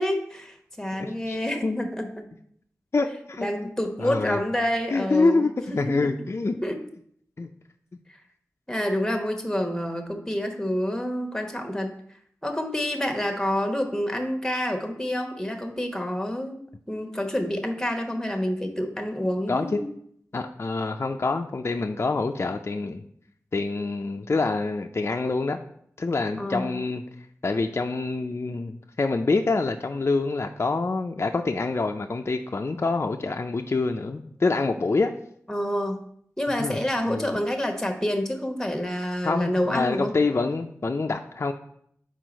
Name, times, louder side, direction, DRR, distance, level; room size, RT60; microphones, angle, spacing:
voice 1, 0.0-2.3 3.4-6.1 6.6-6.8 8.7-11.9 12.4-16.6 16.9-19.9 26.4-26.7 35.5-36.0 36.4-40.2, equal, 10° left, 4 dB, 1.0 m, -28 dB
voice 2, 1.0-1.4 1.6-1.9 2.9-3.7 4.0-4.4 4.9-6.5 7.4-7.5 19.5-19.9 20.3-23.0 23.5-25.6 26.0-27.0 27.4-35.1 36.6-36.8 37.0-37.3 39.2-41.5, left 3 dB, 45° left, 5 dB, 0.4 m, -26 dB
4.6 x 4.0 x 5.1 m, 0.67 s
cardioid pair, 45°, 6 cm